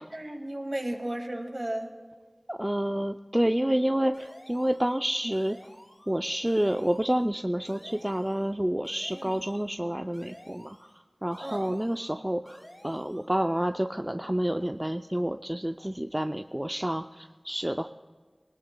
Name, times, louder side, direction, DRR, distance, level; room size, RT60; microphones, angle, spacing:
voice 1, 0.0-1.9 9.1-9.3 11.4-11.8, right 1 dB, 50° right, 3 dB, 2.0 m, -34 dB
voice 2, 2.5-5.6 6.1-10.8 11.2-17.9, equal, 20° right, 7 dB, 0.4 m, -29 dB
sound 1, 4.1-5.0 5.3-6.2 6.5-7.3 7.7-8.5 8.8-9.7 10.1-11.0 11.3-12.2 12.5-13.3, equal, 30° left, 2.3 m, -52 dB
21.5 x 19.0 x 2.2 m, 1.5 s
wide cardioid pair, 45°, 0 cm